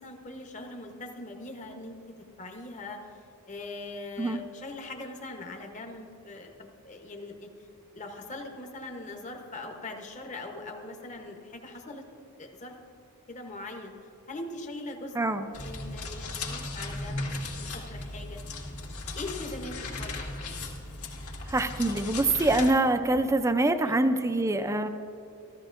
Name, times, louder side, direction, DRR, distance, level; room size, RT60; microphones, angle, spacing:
voice 1, 0.0-2.0 2.4-3.0 3.5-7.5 7.9-12.0 12.4-12.7 13.3-13.9 14.3-15.2 15.6-17.3 17.6-18.4 19.1-20.1 23.8-23.9, left 2 dB, 35° left, 3 dB, 0.9 m, -41 dB
sound 1, 15.5-22.7, left 2 dB, 75° left, 2.0 m, -37 dB
voice 2, 21.5-24.9, right 2 dB, 15° right, 8 dB, 0.4 m, -25 dB
14.5 x 13.5 x 2.5 m, 2.8 s
head